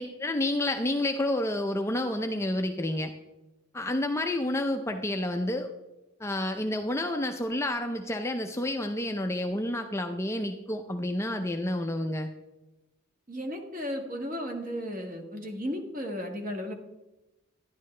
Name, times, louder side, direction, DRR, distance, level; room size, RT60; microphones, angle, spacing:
voice 1, 0.0-3.1 3.7-5.7 6.2-12.3, left 1 dB, 15° left, 5 dB, 0.4 m, -29 dB
voice 2, 13.3-16.7, equal, 40° right, 2 dB, 1.5 m, -34 dB
11.0 x 11.0 x 3.2 m, 1.0 s
head